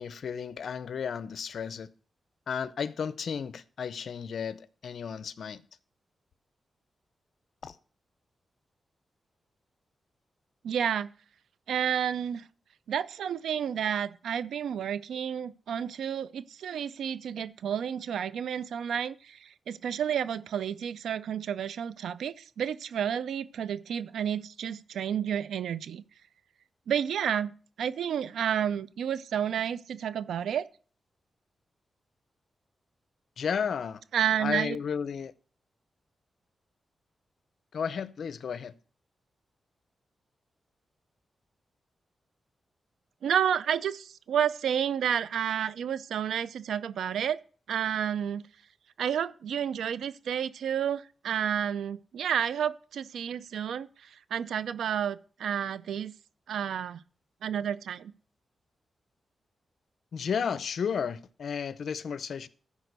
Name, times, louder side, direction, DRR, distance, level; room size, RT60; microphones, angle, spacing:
voice 1, 0.0-1.9 2.5-5.6 7.6-7.8 33.4-34.0 34.4-35.3 37.7-38.7 60.1-62.5, left 7 dB, 75° left, 0.6 m, -33 dB
voice 2, 10.6-11.1 11.7-12.5 12.9-26.0 26.9-27.5 27.8-30.6 34.1-34.8 43.2-47.4 47.7-48.5 49.0-56.1 56.5-57.0 57.4-58.1, right 9 dB, 90° right, 0.5 m, -30 dB
13.5 x 5.1 x 6.7 m
cardioid pair, 65°, 0 cm